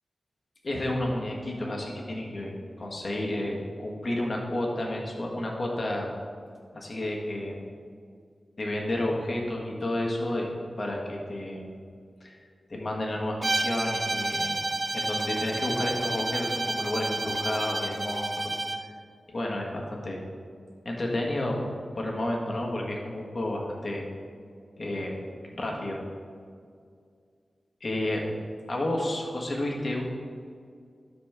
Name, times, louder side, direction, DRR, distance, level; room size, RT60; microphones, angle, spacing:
voice 1, 0.6-2.5 2.8-6.1 6.7-7.6 8.6-10.5 10.8-11.7 12.2-12.4 12.7-18.5 19.3-20.2 20.8-24.0 24.8-25.1 25.5-26.0 27.8-28.3 28.7-30.1, left 1 dB, 55° left, -1 dB, 1.6 m, -31 dB
Bowed string instrument, 13.4-18.9, right 2 dB, 40° right, 0.5 m, -30 dB
12.5 x 4.4 x 3.6 m, 2.2 s
cardioid pair, 40°, 0 cm